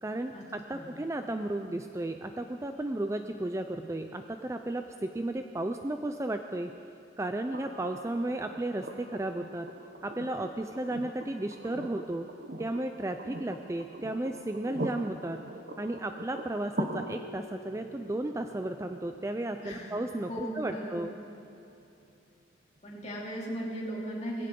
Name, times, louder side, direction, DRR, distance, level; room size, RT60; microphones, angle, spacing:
voice 1, 0.0-6.7 7.2-9.7 10.0-12.3 12.6-15.4 15.8-21.1, right 1 dB, 15° right, 6 dB, 0.4 m, -34 dB
sound 1, 7.5-21.5 23.2-23.3, right 1 dB, 55° right, 0.8 m, -43 dB
voice 2, 20.3-21.0 22.8-24.5, equal, 35° left, -5 dB, 3.0 m, -37 dB
19.5 x 16.0 x 3.8 m, 2.8 s
head